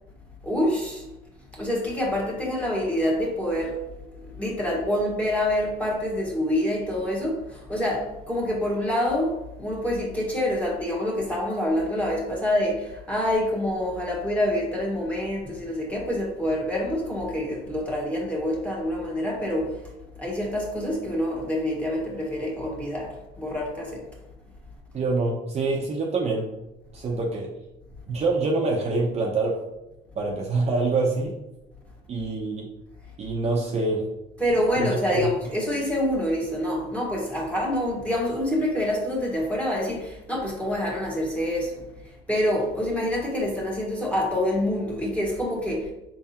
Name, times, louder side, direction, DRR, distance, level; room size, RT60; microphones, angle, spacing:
voice 1, 0.4-1.1 1.5-3.8 4.2-24.0 34.4-41.8 42.3-45.9, left 1 dB, 10° left, -3 dB, 1.5 m, -26 dB
voice 2, 24.9-26.5 26.9-27.5 28.1-29.6 30.1-31.4 32.1-32.7 33.2-34.1 34.8-35.3, right 3 dB, 40° right, -1 dB, 0.7 m, -25 dB
5.3 x 3.6 x 2.9 m, 0.94 s
cardioid pair, 110°, 17 cm